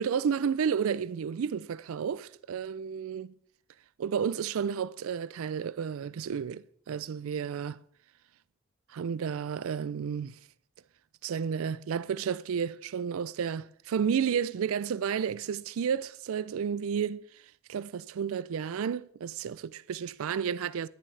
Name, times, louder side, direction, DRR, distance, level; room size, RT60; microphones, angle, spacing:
voice 1, 0.0-3.3 4.0-7.8 8.9-10.4 11.2-17.4 17.7-20.9, right 7 dB, 75° right, 0.4 m, -31 dB
11.0 x 11.0 x 3.3 m
head